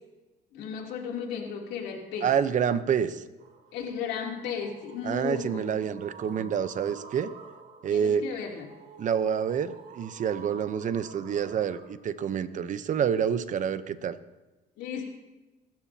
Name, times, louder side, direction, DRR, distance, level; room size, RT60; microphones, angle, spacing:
voice 1, 0.5-2.3 3.7-5.9 6.3-6.5 7.9-8.6 14.8-15.1, left 6 dB, 85° left, 0 dB, 3.1 m, -35 dB
voice 2, 2.2-3.2 5.0-7.3 7.8-8.2 9.0-14.2, right 8 dB, 50° right, 13 dB, 0.8 m, -28 dB
sound 1, 3.4-11.9, right 6 dB, 65° right, 3.3 m, -49 dB
26.5 x 13.5 x 2.9 m, 1.1 s
cardioid pair, 110°, 17 cm